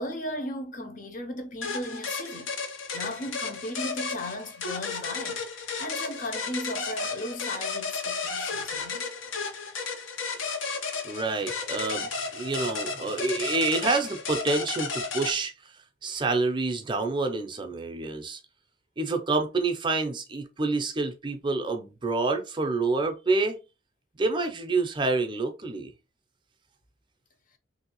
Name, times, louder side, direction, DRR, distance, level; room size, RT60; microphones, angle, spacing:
voice 1, 0.0-2.5 2.9-5.4 5.8-9.1, left 1 dB, 40° left, 0.6 m, -36 dB
sound 1, 1.6-15.3, left 4 dB, 75° left, 0.7 m, -33 dB
voice 2, 11.0-15.5 16.0-18.4 19.0-23.6 24.2-25.9, right 3 dB, 25° right, 0.5 m, -28 dB
3.2 x 2.6 x 2.9 m
head